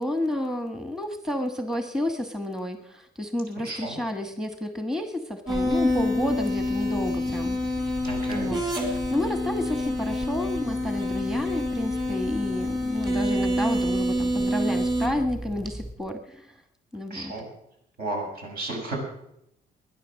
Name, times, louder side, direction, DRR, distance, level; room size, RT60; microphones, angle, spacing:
voice 1, 0.0-7.6 8.3-16.5 16.9-17.3, left 1 dB, 5° right, 7 dB, 1.2 m, -30 dB
voice 2, 3.6-4.0 8.0-8.8 17.1-17.4 18.0-19.0, right 2 dB, 70° right, 1 dB, 7.0 m, -33 dB
sound 1, 5.5-15.9, left 1 dB, 25° right, 4.2 m, -27 dB
22.0 x 10.5 x 6.3 m, 0.77 s
cardioid pair, 130°, 17 cm